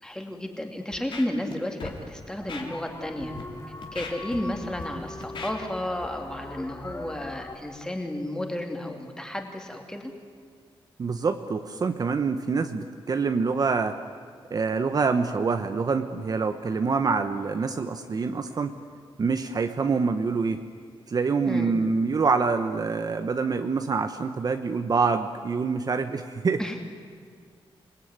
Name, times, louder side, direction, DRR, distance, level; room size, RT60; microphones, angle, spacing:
voice 1, 0.0-3.3 3.9-10.1 21.5-21.8 26.6-26.8, left 1 dB, 5° left, 3 dB, 2.8 m, -32 dB
Scratching (performance technique), 0.9-1.5 1.8-2.0 2.5-2.6 3.2-3.4 3.8-4.8 5.2-5.5 6.0-6.1, left 5 dB, 60° left, 3.3 m, -38 dB
sound 1, 2.4-7.6, left 2 dB, 25° left, 2.2 m, -41 dB
voice 2, 11.0-14.0 14.5-18.8 19.2-20.6 21.1-26.6, right 4 dB, 45° right, 8 dB, 1.0 m, -26 dB
27.0 x 20.0 x 9.6 m, 2.1 s
wide cardioid pair, 155°, 10 cm